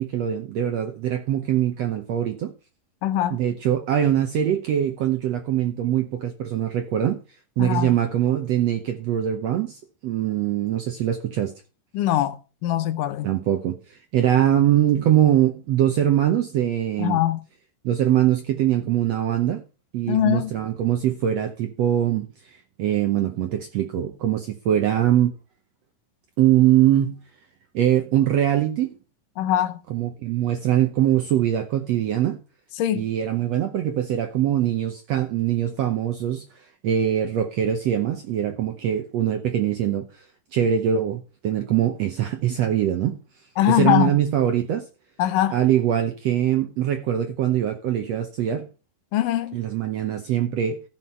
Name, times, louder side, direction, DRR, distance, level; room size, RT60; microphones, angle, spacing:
voice 1, 0.0-2.5 3.3-7.2 7.6-11.5 13.2-17.2 17.8-19.6 19.9-25.4 26.4-27.2 27.7-29.0 29.9-32.4 32.9-36.4 36.8-40.2 40.5-43.2 43.7-44.8 45.5-48.7 49.5-50.8, right 11 dB, 70° right, 1.6 m, -22 dB
voice 2, 3.0-3.4 7.6-7.9 11.9-12.4 12.6-13.3 17.0-17.4 20.1-20.5 29.4-29.8 32.8-33.0 43.6-44.1 45.2-45.6 49.1-49.6, left 12 dB, 75° left, 2.3 m, -22 dB
14.0 x 5.8 x 5.6 m
omnidirectional pair, 4.0 m